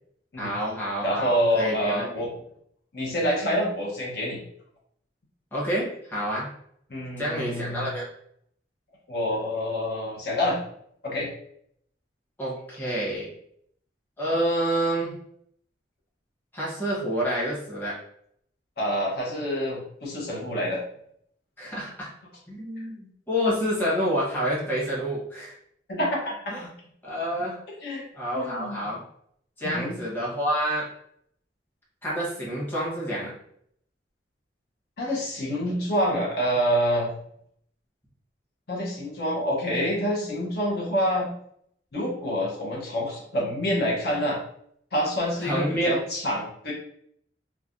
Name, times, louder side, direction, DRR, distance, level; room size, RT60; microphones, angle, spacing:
voice 1, 0.4-2.1 5.5-6.5 7.2-8.0 12.4-13.3 14.2-15.2 16.5-18.0 21.6-22.1 22.5-25.5 26.5-26.6 27.0-27.6 28.1-29.0 29.6-30.9 32.0-33.3 45.4-46.0, equal, 10° left, -7 dB, 1.0 m, -28 dB
voice 2, 1.0-2.3 2.9-4.4 6.9-7.9 9.1-10.6 11.0-11.3 18.8-20.8 25.9-26.5 27.8-28.0 28.3-28.8 29.6-30.0 35.0-37.1 38.7-41.3 41.9-44.4 44.9-46.7, equal, 60° left, -4 dB, 0.8 m, -27 dB
3.2 x 2.2 x 2.5 m, 0.68 s
head